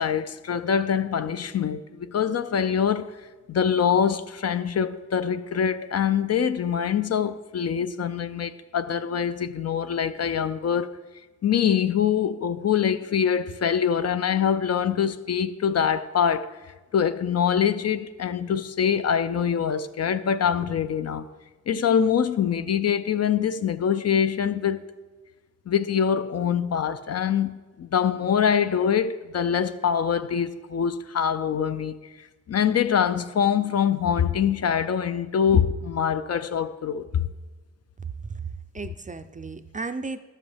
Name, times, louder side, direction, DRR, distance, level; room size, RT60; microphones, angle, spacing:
voice 1, 0.0-3.1 3.5-11.0 11.4-16.6 16.9-21.3 21.7-24.8 25.7-37.3, left 8 dB, 55° left, 0.5 m, -24 dB
voice 2, 38.2-40.2, right 4 dB, 25° right, 0.4 m, -35 dB
12.0 x 7.4 x 3.4 m
wide cardioid pair, 85°, 31 cm